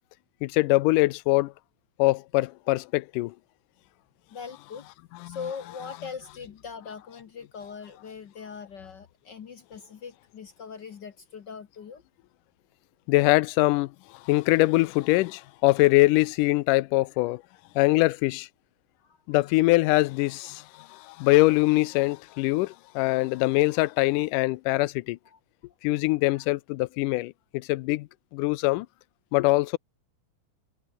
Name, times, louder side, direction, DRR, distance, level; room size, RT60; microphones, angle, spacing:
voice 1, 0.4-1.5 2.0-3.3 4.7-4.8 5.1-5.9 13.1-13.9 14.2-17.4 17.8-18.5 19.3-25.2 25.8-28.1 28.3-28.9 29.3-29.8, left 20 dB, 90° left, 2.2 m, -23 dB
voice 2, 4.3-4.9 5.2-12.0 19.0-19.4 25.3-25.4 25.9-26.0 26.3-26.5, left 6 dB, 60° left, 1.1 m, -41 dB
omnidirectional pair, 3.6 m